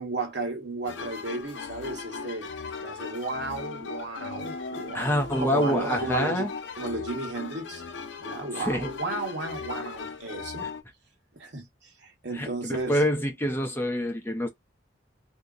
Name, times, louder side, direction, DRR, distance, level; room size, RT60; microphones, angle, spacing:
voice 1, 0.0-2.5 2.8-6.5 6.8-7.8 8.2-10.7 11.4-11.7 12.0-13.0, right 3 dB, 60° right, 1.2 m, -34 dB
sound 1, 0.8-10.8, left 4 dB, 70° left, 0.6 m, -38 dB
voice 2, 4.9-6.5 8.5-8.9 12.3-14.5, left 1 dB, 10° left, 0.6 m, -26 dB
2.7 x 2.1 x 3.7 m
head